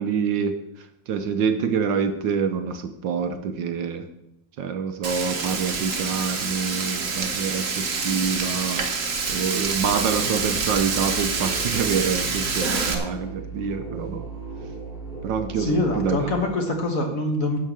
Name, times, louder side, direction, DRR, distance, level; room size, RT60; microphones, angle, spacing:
voice 1, 0.0-4.1 4.6-8.8 9.3-14.3 15.2-16.3, right 6 dB, 70° right, 8 dB, 1.3 m, -26 dB
Frying (food), 5.0-12.9, right 4 dB, 45° right, 1.4 m, -27 dB
sound 1, 9.8-16.4, right 4 dB, 20° left, 4.0 m, -36 dB
voice 2, 15.6-17.6, left 2 dB, 45° left, 3 dB, 1.6 m, -24 dB
11.5 x 5.6 x 7.4 m, 0.86 s
omnidirectional pair, 2.3 m